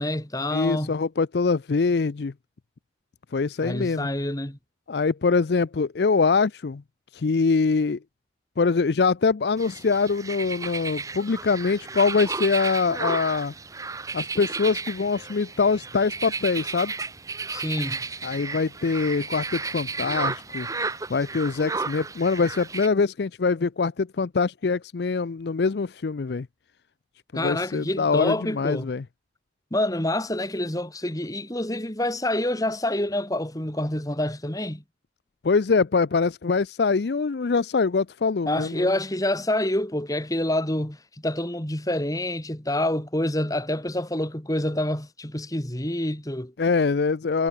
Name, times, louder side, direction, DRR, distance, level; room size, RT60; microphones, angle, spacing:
voice 1, 0.0-0.9 3.6-4.6 17.5-18.0 27.3-28.9 29.7-34.8 38.5-41.0 41.2-46.5, left 1 dB, 20° left, 2.4 m, -27 dB
voice 2, 0.5-2.3 3.3-4.1 4.9-6.8 7.1-8.0 8.6-13.5 14.1-16.9 18.2-20.7 21.1-26.5 27.3-29.0 35.4-38.9 46.6-47.5, left 4 dB, 60° left, 0.5 m, -24 dB
sound 1, 9.6-22.9, right 4 dB, 20° right, 0.9 m, -33 dB
head